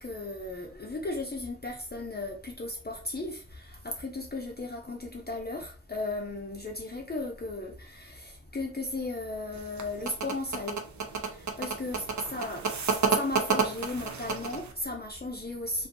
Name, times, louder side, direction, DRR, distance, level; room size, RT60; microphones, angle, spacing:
voice 1, 0.0-15.9, left 2 dB, 35° left, 0.5 m, -36 dB
sound 1, 9.5-14.7, right 5 dB, 70° right, 0.5 m, -30 dB
2.5 x 2.3 x 2.6 m
wide cardioid pair, 45°, 29 cm